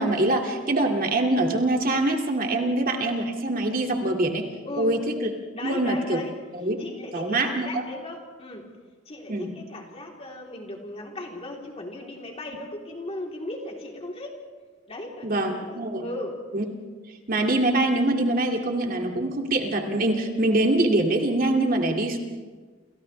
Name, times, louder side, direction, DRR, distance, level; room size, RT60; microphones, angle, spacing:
voice 1, 0.0-4.5 4.8-5.3 5.6-6.2 6.5-6.8 7.1-7.7 9.3-9.5 15.2-16.1 16.5-16.7 17.3-22.2, right 2 dB, 45° right, 2 dB, 2.2 m, -24 dB
voice 2, 4.6-5.0 5.5-6.3 6.8-8.7 9.0-14.4 14.9-16.4, left 1 dB, 30° left, 0 dB, 3.4 m, -37 dB
29.5 x 29.0 x 3.3 m, 1.4 s
head